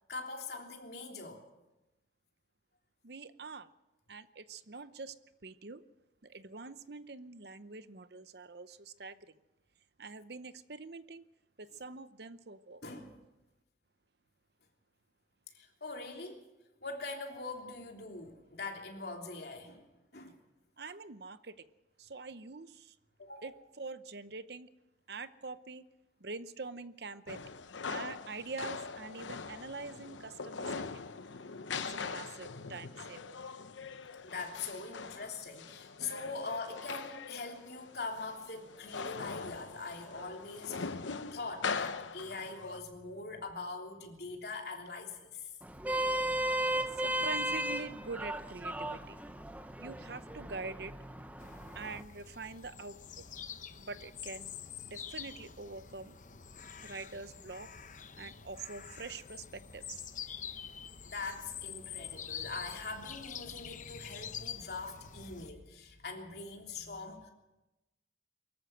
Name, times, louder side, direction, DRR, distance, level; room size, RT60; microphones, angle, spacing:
voice 1, 0.1-1.4 12.8-13.2 15.5-16.4 16.8-19.8 20.1-20.4 23.2-23.5 34.2-45.5 61.0-67.3, left 3 dB, 60° left, 1 dB, 3.3 m, -42 dB
voice 2, 3.0-3.7 4.1-5.1 5.4-5.8 6.2-9.2 10.0-11.2 11.6-12.8 20.8-21.7 22.0-22.9 23.4-24.7 25.1-25.8 26.2-27.5 27.9-30.9 31.9-33.4 46.7-49.2 49.8-50.9 51.7-53.2 53.8-54.5 54.9-56.1 56.8-57.7 58.2-60.0, right 4 dB, 60° right, 13 dB, 0.8 m, -45 dB
sound 1, 27.3-42.8, left 5 dB, 85° left, 0.9 m, -42 dB
Vehicle horn car horn honking, 45.6-52.0, right 1 dB, 10° right, 0.8 m, -35 dB
sound 2, 51.4-65.5, left 8 dB, 40° left, 0.8 m, -46 dB
23.5 x 13.5 x 8.0 m, 0.99 s
head